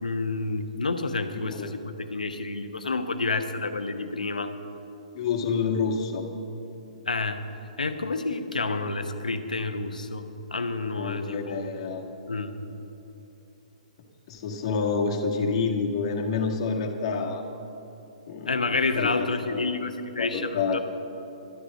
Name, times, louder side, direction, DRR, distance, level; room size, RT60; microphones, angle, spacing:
voice 1, 0.0-4.5 7.1-7.4 7.8-10.3 10.5-11.6 12.3-12.5 18.5-20.8, left 3 dB, 85° left, 8 dB, 1.0 m, -29 dB
voice 2, 1.3-1.9 5.1-6.3 11.0-12.0 14.3-17.4 18.3-19.9 20.2-20.8, left 5 dB, 50° left, 2 dB, 1.7 m, -28 dB
12.5 x 10.0 x 6.4 m, 2.9 s
figure-of-eight pair, 125°, 4 cm